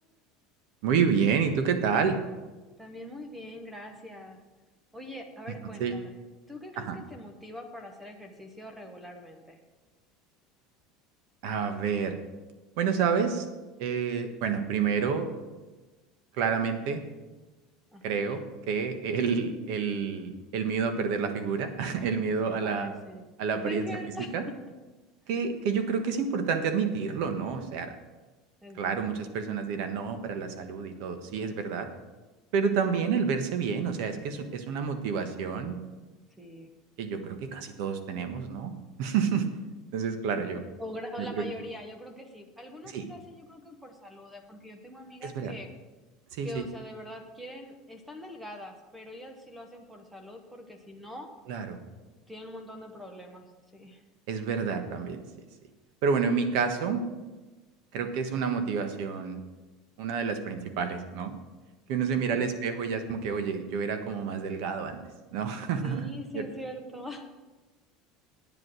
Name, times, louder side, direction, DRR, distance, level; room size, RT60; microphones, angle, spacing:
voice 1, 0.8-2.2 5.8-5.9 6.8-7.0 11.4-12.2 12.8-13.5 13.8-15.3 16.3-17.0 18.0-18.4 18.7-22.9 23.4-24.0 24.3-24.4 25.3-27.9 28.7-31.9 32.5-35.8 37.0-39.4 39.9-40.6 41.2-41.4 42.9-43.0 45.2-45.5 46.3-46.6 51.5-51.8 54.3-55.2 56.0-57.0 57.9-59.4 60.0-61.3 61.9-65.0 65.3-66.1 66.3-66.4, right 6 dB, 60° right, 8 dB, 1.3 m, -29 dB
voice 2, 2.8-4.4 4.9-6.2 6.5-9.6 17.9-18.2 22.6-23.2 23.6-24.5 28.6-29.1 36.4-36.7 40.8-45.7 46.4-51.3 52.3-53.4 53.7-54.0 62.3-62.5 65.8-67.3, left 1 dB, 5° right, 5 dB, 0.9 m, -43 dB
9.4 x 8.1 x 6.4 m, 1.2 s
cardioid pair, 170°, 0 cm